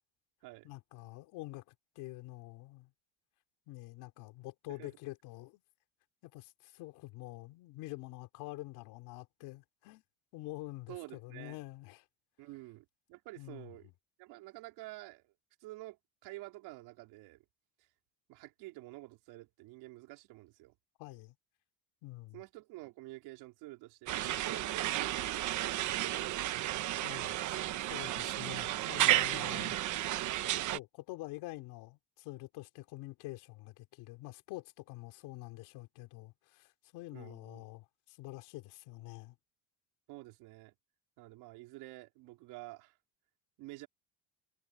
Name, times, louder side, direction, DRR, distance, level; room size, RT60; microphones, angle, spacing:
voice 1, 0.6-2.9 3.7-5.6 6.2-10.0 10.3-12.0 13.4-13.9 21.0-21.3 22.0-22.4 27.0-27.3 27.9-29.8 30.7-39.3, left 20 dB, 75° left, 3.4 m, -47 dB
voice 2, 10.9-11.6 12.4-13.9 14.2-15.3 15.6-17.4 18.3-20.7 22.3-26.3 27.9-28.1 37.1-37.6 40.1-40.7 41.2-43.0 43.6-43.9, right 19 dB, 75° right, 4.3 m, -50 dB
sound 1, 24.1-30.8, right 14 dB, 50° right, 1.2 m, -33 dB
cardioid pair, 175°, 39 cm